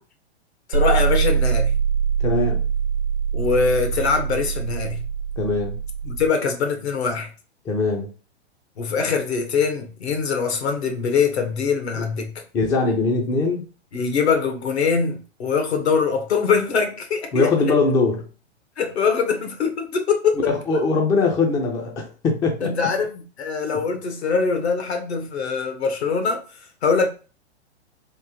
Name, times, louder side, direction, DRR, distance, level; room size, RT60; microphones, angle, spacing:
voice 1, 0.7-1.8 3.3-5.0 6.0-7.3 8.8-12.3 13.9-17.5 18.8-20.4 20.7-20.8 22.6-27.1, left 5 dB, 70° left, 1.2 m, -23 dB
sound 1, 0.7-6.3, right 7 dB, 80° right, 0.9 m, -23 dB
voice 2, 2.2-2.6 5.4-5.8 7.6-8.1 12.0-12.1 12.5-13.7 17.3-18.3 20.4-22.7 23.7-23.8, left 3 dB, 10° left, 0.4 m, -21 dB
3.5 x 2.6 x 2.9 m
hypercardioid pair, 120°, 34 cm